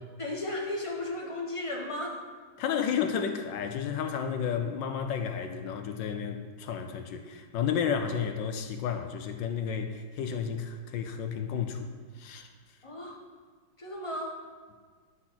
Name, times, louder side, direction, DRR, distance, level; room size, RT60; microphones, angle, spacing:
voice 1, 0.2-2.2 12.8-13.2 13.8-14.3, left 1 dB, 20° left, -2 dB, 1.0 m, -35 dB
voice 2, 2.6-12.5, left 7 dB, 75° left, 7 dB, 1.2 m, -32 dB
11.5 x 4.2 x 5.8 m, 1.5 s
omnidirectional pair, 2.3 m